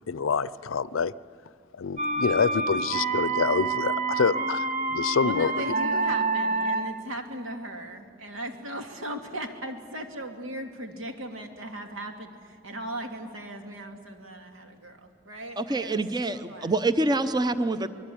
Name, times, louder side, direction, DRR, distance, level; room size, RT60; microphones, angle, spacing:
voice 1, 0.1-1.1 1.8-5.5, left 5 dB, 80° left, 18 dB, 0.5 m, -26 dB
sound 1, 2.0-7.1, right 3 dB, 40° right, 1.1 m, -27 dB
voice 2, 5.2-16.0 16.3-16.7, right 1 dB, 85° right, 4 dB, 2.5 m, -37 dB
voice 3, 15.6-17.9, right 2 dB, 20° right, 11 dB, 0.7 m, -26 dB
24.5 x 21.5 x 8.6 m, 2.2 s
head